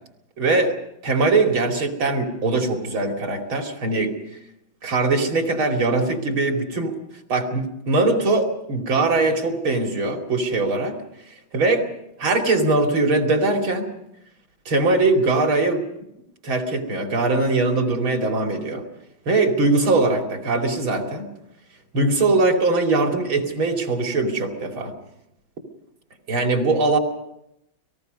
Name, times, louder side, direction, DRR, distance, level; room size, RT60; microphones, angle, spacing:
voice 1, 0.4-0.8 1.0-4.1 4.8-7.0 7.3-11.0 11.5-11.9 12.2-13.9 14.7-15.8 16.4-18.8 19.3-21.3 21.9-24.9 26.3-27.0, right 3 dB, 75° right, 3 dB, 3.5 m, -21 dB
29.5 x 19.5 x 5.3 m, 0.84 s
omnidirectional pair, 2.2 m